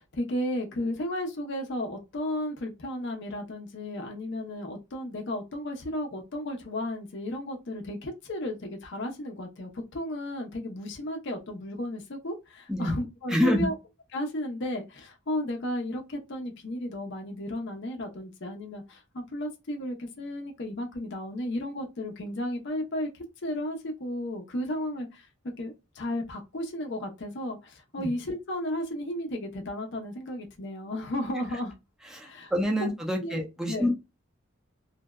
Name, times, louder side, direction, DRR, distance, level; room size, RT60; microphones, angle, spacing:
voice 1, 0.0-13.7 14.1-23.1 23.4-25.3 25.6-31.7 32.2-32.5 33.2-33.4 33.7-33.9, left 1 dB, 60° left, 0.6 m, -34 dB
voice 2, 13.3-13.7 28.0-28.1 32.1-33.9, left 1 dB, 5° right, 0.5 m, -27 dB
2.6 x 2.1 x 2.2 m
head